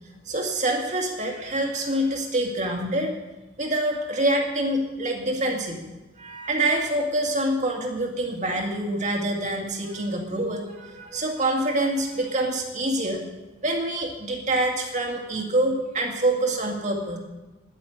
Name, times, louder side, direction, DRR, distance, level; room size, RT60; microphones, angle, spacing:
voice 1, 0.3-3.2 3.6-5.9 6.2-13.2 13.6-17.2, right 1 dB, 35° right, 1 dB, 2.2 m, -26 dB
10.5 x 8.7 x 9.9 m, 1.1 s
head